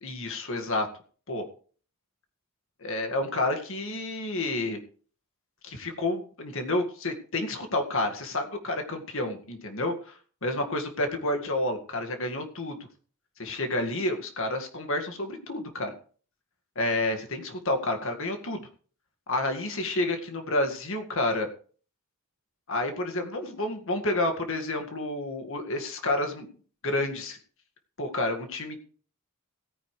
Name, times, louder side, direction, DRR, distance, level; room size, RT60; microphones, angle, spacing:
voice 1, 0.0-0.9 1.3-1.4 2.8-4.8 5.6-12.8 13.4-15.9 16.8-18.7 19.3-21.5 22.7-26.5 26.8-27.4 28.0-28.8, left 2 dB, 60° left, 5 dB, 2.0 m, -30 dB
17.0 x 9.8 x 3.3 m, 0.41 s
head